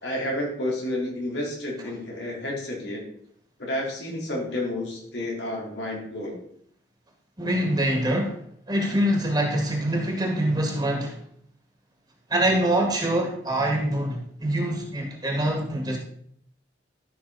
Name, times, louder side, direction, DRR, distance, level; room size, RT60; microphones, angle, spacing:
voice 1, 0.0-3.0 3.6-6.4, left 1 dB, 85° left, -2 dB, 3.6 m, -30 dB
voice 2, 7.4-8.4 8.7-11.2 12.3-16.0, right 1 dB, 25° right, 1 dB, 1.9 m, -24 dB
13.5 x 5.9 x 4.1 m, 0.66 s
head